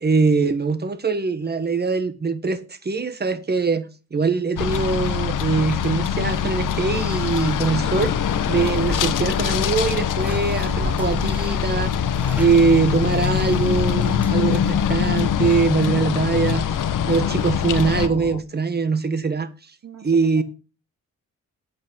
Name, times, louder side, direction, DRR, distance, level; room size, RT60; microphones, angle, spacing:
voice 1, 0.0-8.2 8.5-12.0 12.4-19.5 20.0-20.4, right 4 dB, 30° right, 1.4 m, -22 dB
sound 1, 4.6-18.1, left 8 dB, 90° left, 1.0 m, -23 dB
Bathtub (filling or washing), 7.0-14.3, right 1 dB, 5° right, 2.1 m, -36 dB
sound 2, 7.8-18.4, left 8 dB, 65° left, 1.1 m, -32 dB
voice 2, 19.8-20.4, right 8 dB, 65° right, 2.0 m, -42 dB
8.7 x 8.3 x 5.3 m
cardioid pair, 95°, 31 cm